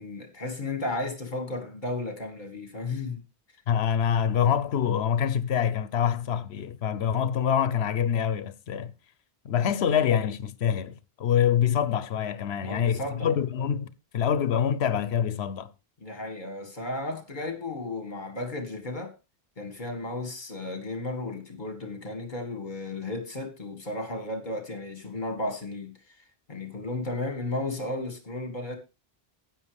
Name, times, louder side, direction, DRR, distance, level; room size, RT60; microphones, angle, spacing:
voice 1, 0.0-3.2 12.6-13.3 16.0-19.1 19.6-26.0 26.5-28.8, left 2 dB, 50° left, 2.1 m, -34 dB
voice 2, 3.7-8.9 9.4-15.7, left 8 dB, 85° left, 1.0 m, -25 dB
12.5 x 9.0 x 3.3 m
omnidirectional pair, 1.0 m